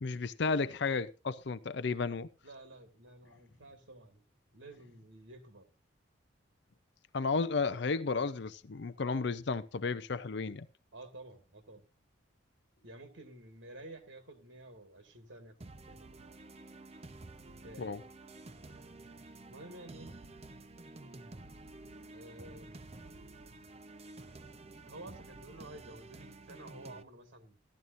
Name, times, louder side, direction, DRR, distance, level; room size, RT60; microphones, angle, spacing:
voice 1, 0.0-2.3 7.1-10.7 17.8-18.0, left 4 dB, 60° left, 0.5 m, -33 dB
voice 2, 2.4-4.2 4.5-5.7 10.9-11.9 12.8-15.6 15.9-16.3 17.6-17.8 19.5-20.2 22.1-22.8 24.9-27.6, right 2 dB, 75° right, 1.8 m, -51 dB
sound 1, 15.6-27.0, right 2 dB, 30° right, 0.7 m, -51 dB
15.5 x 12.5 x 2.6 m
head